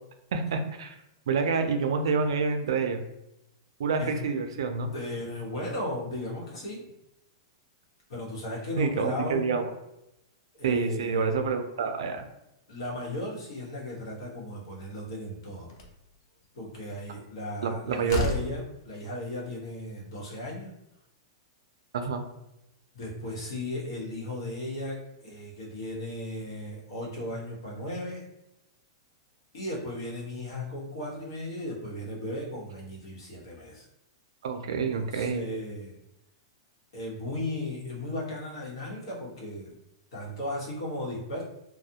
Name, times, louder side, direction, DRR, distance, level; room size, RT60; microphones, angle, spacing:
voice 1, 0.3-1.0 1.3-3.0 3.8-4.9 8.8-9.7 10.6-12.2 17.6-18.2 21.9-22.2 34.4-35.5, right 5 dB, 80° right, 7 dB, 0.4 m, -27 dB
voice 2, 4.9-6.9 8.1-9.5 10.5-11.3 12.7-15.7 16.5-20.7 22.9-28.2 29.5-33.8 34.9-36.0 36.9-39.7 40.1-41.4, left 1 dB, 80° left, -4 dB, 1.0 m, -36 dB
Slam, 15.7-16.0 17.6-17.7 18.1-18.6, left 1 dB, 50° left, 0.5 m, -31 dB
2.3 x 2.0 x 2.7 m, 0.87 s
supercardioid pair, 170°, 3 cm